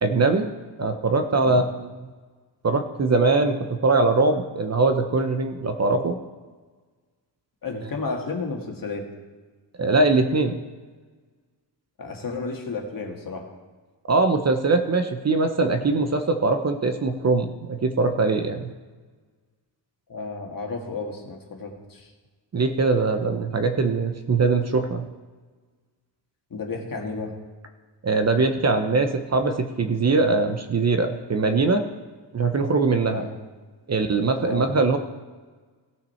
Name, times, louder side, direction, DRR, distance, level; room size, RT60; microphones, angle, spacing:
voice 1, 0.0-0.5 0.8-1.6 2.6-6.2 9.8-10.5 14.1-18.7 22.5-25.1 28.0-31.8 32.3-33.2 33.9-35.0, right 3 dB, 35° right, 7 dB, 0.8 m, -22 dB
voice 2, 7.6-9.0 12.0-13.4 20.1-22.1 26.5-27.3 33.1-33.3 34.4-34.7, left 4 dB, 50° left, 1 dB, 1.8 m, -32 dB
17.0 x 5.9 x 4.4 m, 1.4 s
wide cardioid pair, 110°, 45 cm